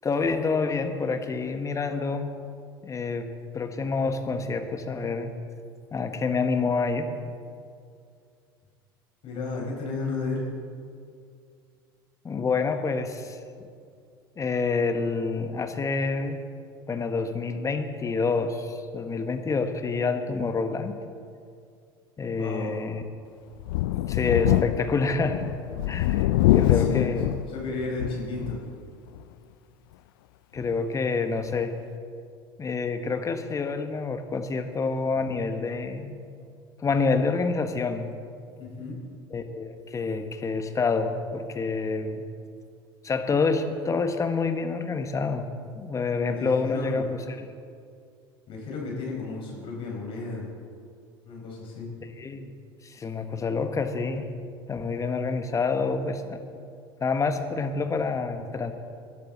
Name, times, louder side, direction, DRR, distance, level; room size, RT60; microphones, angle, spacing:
voice 1, 0.0-2.3 2.8-3.3 3.5-5.3 5.9-7.1 12.2-13.4 14.4-16.4 16.9-20.9 22.2-23.0 24.1-25.4 25.9-27.3 30.5-31.7 32.6-36.1 36.8-38.1 39.3-42.2 43.0-45.5 45.8-47.5 52.0-52.5 52.8-54.3 54.7-56.4 57.0-58.7, left 4 dB, 25° left, 7 dB, 1.3 m, -27 dB
voice 2, 9.2-10.5 22.3-22.8 25.7-25.8 26.4-27.2 27.5-28.6 38.6-39.0 46.3-47.1 48.5-50.5 51.2-51.9, left 3 dB, 45° left, -2 dB, 4.6 m, -33 dB
Thunder, 23.6-28.7 29.1-29.2 30.6-30.7, left 15 dB, 65° left, 0.4 m, -24 dB
21.0 x 11.5 x 4.1 m, 2.3 s
figure-of-eight pair, 70°, 12 cm